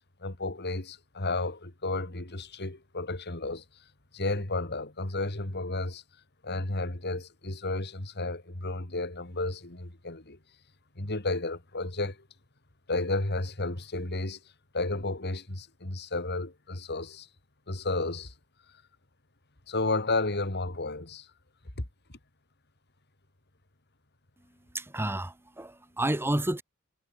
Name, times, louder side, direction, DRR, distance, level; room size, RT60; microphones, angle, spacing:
voice 1, 0.2-3.6 4.1-6.0 6.4-10.4 10.9-12.3 12.9-14.4 14.7-17.3 17.7-18.3 19.7-21.3 21.8-21.9, left 2 dB, 50° left, 3.1 m, -32 dB
voice 2, 24.7-26.6, right 1 dB, 10° right, 1.1 m, -30 dB
head